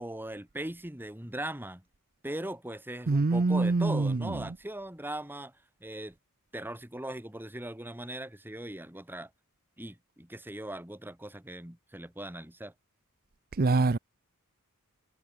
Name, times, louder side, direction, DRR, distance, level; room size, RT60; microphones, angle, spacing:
voice 1, 0.0-1.8 2.2-5.5 5.8-6.1 6.5-9.3 9.8-12.7, right 1 dB, 10° right, 1.9 m, -39 dB
voice 2, 3.1-4.4 13.6-14.0, right 3 dB, 40° right, 0.6 m, -25 dB
head